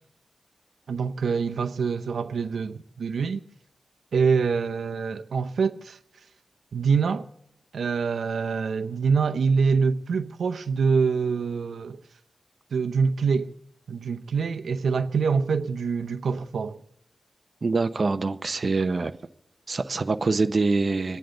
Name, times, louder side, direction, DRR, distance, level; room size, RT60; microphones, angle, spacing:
voice 1, 0.9-3.4 4.1-6.0 6.7-7.3 7.7-12.0 12.7-13.5 13.9-16.8 18.6-18.7, right 5 dB, 85° right, 0.7 m, -25 dB
voice 2, 17.6-19.1 19.7-21.2, right 3 dB, 45° right, 0.7 m, -24 dB
27.5 x 10.0 x 3.9 m
wide cardioid pair, 100°, 0 cm